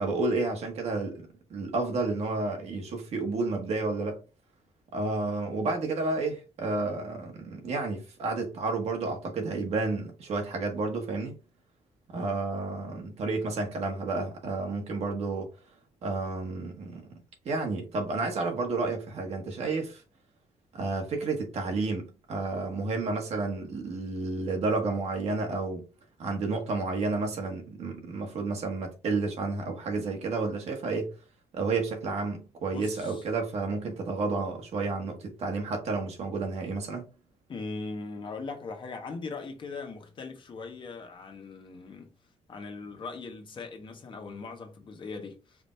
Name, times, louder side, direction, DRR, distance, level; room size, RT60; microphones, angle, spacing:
voice 1, 0.0-4.2 4.9-11.3 12.1-15.5 16.0-17.1 17.4-20.0 20.7-25.8 26.2-31.1 31.5-37.0, right 3 dB, 65° right, 1.4 m, -31 dB
voice 2, 32.7-33.3 37.5-42.1 42.5-45.6, left 4 dB, 45° left, 1.1 m, -40 dB
5.0 x 2.6 x 3.2 m
cardioid pair, 110°, 12 cm